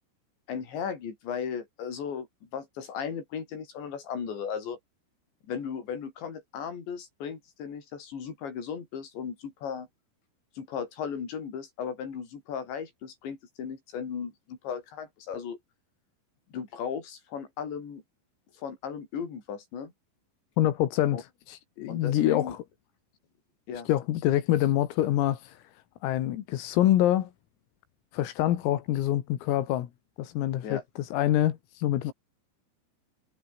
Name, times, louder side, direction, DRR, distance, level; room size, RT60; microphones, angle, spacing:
voice 1, 0.5-4.8 5.5-9.9 10.6-15.6 16.5-18.0 18.6-19.9 21.1-21.2 21.9-22.6 23.7-23.9 30.6-30.8, left 7 dB, 60° left, 7.0 m, -36 dB
voice 2, 20.6-22.6 23.9-25.6 26.0-27.3 28.1-29.9 30.2-32.1, left 13 dB, 90° left, 4.6 m, -26 dB
omnidirectional pair, 5.9 m